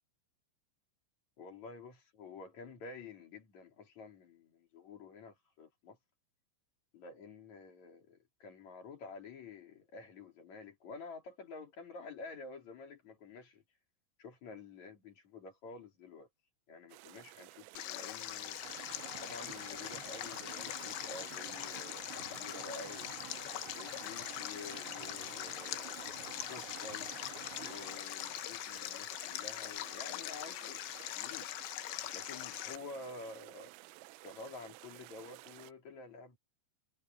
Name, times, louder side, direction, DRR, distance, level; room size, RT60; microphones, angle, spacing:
voice 1, 1.4-6.0 6.9-13.6 14.2-16.3 16.7-18.6 19.2-23.2 23.7-26.0 26.3-27.1 27.6-31.5 32.1-33.7 34.2-36.4, left 4 dB, 40° left, 4.3 m, -50 dB
sound 1, 16.9-35.7, right 22 dB, 90° right, 3.2 m, -54 dB
Stream, 17.8-32.8, left 16 dB, 75° left, 3.0 m, -42 dB
sound 2, 18.6-28.0, right 11 dB, 65° right, 3.4 m, -51 dB
omnidirectional pair, 5.6 m